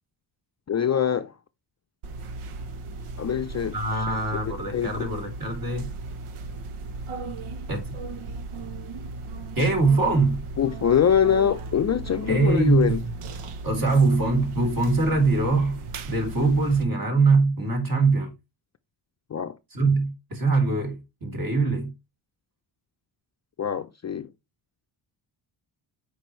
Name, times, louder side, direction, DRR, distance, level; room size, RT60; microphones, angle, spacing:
voice 1, 0.7-1.3 3.2-4.1 4.7-5.1 10.6-13.0 19.3-19.6 23.6-24.3, left 8 dB, 35° left, 0.6 m, -24 dB
sound 1, 2.0-16.8, right 3 dB, 80° right, 1.1 m, -36 dB
voice 2, 3.7-5.9 7.7-7.8 9.6-10.4 12.3-12.9 13.6-15.8 16.1-18.3 19.7-21.9, right 3 dB, 45° right, 3.0 m, -22 dB
7.9 x 5.1 x 3.1 m
cardioid pair, 85°, 50 cm